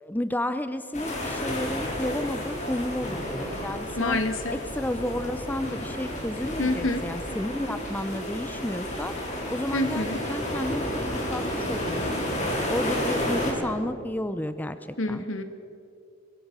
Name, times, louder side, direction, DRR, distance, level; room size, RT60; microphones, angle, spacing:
voice 1, 0.0-4.2 4.5-9.1 9.5-12.3 12.7-15.2, left 1 dB, 10° left, 11 dB, 0.6 m, -32 dB
sound 1, 0.9-13.5, left 1 dB, 35° left, 4.7 m, -31 dB
voice 2, 4.0-4.6 6.6-7.0 9.7-10.2 15.0-15.4, left 2 dB, 75° left, 7 dB, 2.0 m, -27 dB
23.0 x 22.5 x 6.2 m, 2.5 s
head